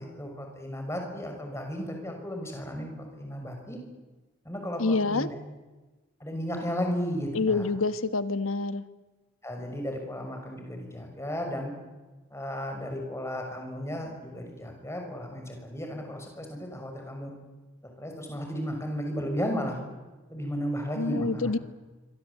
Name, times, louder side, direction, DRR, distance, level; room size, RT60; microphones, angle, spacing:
voice 1, 0.0-3.8 4.4-5.4 6.2-7.7 9.4-11.7 12.3-17.3 18.0-19.8 20.3-21.5, equal, 15° left, 3 dB, 6.0 m, -34 dB
voice 2, 4.8-5.3 7.3-8.8 21.0-21.6, left 3 dB, 90° left, 12 dB, 1.4 m, -27 dB
26.5 x 24.5 x 8.4 m, 1.2 s
head